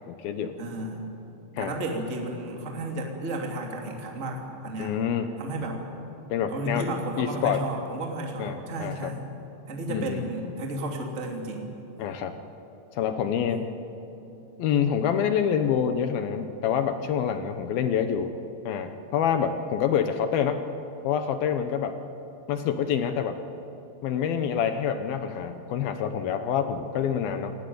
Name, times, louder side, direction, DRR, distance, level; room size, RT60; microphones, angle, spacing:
voice 1, 0.1-0.6 1.6-1.7 4.8-5.4 6.3-6.9 7.2-7.6 8.4-9.1 9.9-10.3 12.0-12.4 12.9-13.7 14.6-18.3 18.6-20.6 21.0-22.0 22.5-23.4 24.0-27.6, left 8 dB, 75° left, 8 dB, 2.3 m, -27 dB
voice 2, 0.6-1.0 1.6-4.4 4.6-5.0 5.4-5.8 6.5-9.2 9.7-11.7 13.5-13.7, right 1 dB, 20° right, 1 dB, 2.3 m, -33 dB
28.5 x 19.0 x 9.5 m, 2.9 s
omnidirectional pair, 5.4 m